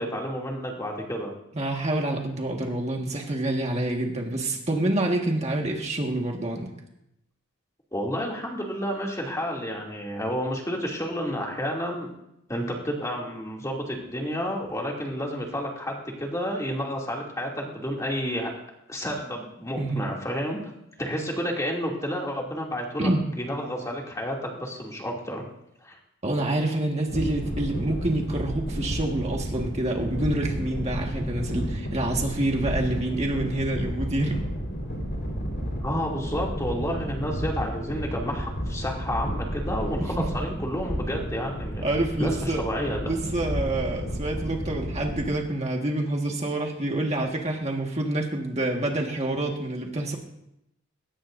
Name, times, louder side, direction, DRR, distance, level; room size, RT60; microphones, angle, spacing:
voice 1, 0.0-1.3 7.9-12.1 12.5-18.5 18.9-20.7 21.0-23.1 23.4-25.4 25.8-26.0 35.8-41.8 42.2-43.1, equal, 15° left, -2 dB, 2.7 m, -30 dB
voice 2, 1.5-6.7 19.8-19.9 23.0-23.2 26.2-34.4 41.8-42.6 43.1-50.2, right 1 dB, 30° right, 0 dB, 1.7 m, -27 dB
sound 1, 27.1-45.3, equal, 55° left, 4.5 m, -32 dB
21.0 x 18.0 x 2.7 m, 0.82 s
head